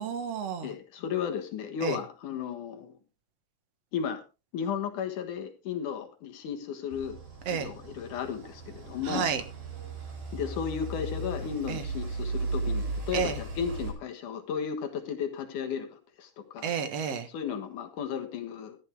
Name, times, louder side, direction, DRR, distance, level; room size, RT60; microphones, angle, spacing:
voice 1, 0.0-0.7 1.8-2.0 7.5-7.7 9.1-9.4 11.7-11.8 13.1-13.4 16.6-17.3, right 7 dB, 60° right, 9 dB, 2.3 m, -31 dB
voice 2, 0.6-3.0 3.9-4.2 4.5-7.2 7.5-9.3 10.3-16.7 17.3-18.8, left 7 dB, 80° left, 6 dB, 2.9 m, -34 dB
sound 1, 6.9-13.9, right 3 dB, 75° right, 5.7 m, -36 dB
14.0 x 12.0 x 3.5 m, 0.30 s
omnidirectional pair, 3.6 m